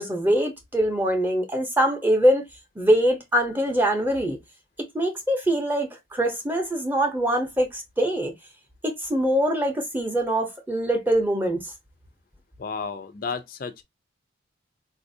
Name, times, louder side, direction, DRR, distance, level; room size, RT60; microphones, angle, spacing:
voice 1, 0.0-2.4 2.8-4.4 4.9-8.3 8.8-11.7, equal, 10° right, 0.6 m, -23 dB
voice 2, 12.6-13.8, left 5 dB, 45° left, 0.4 m, -32 dB
4.1 x 2.4 x 2.6 m
head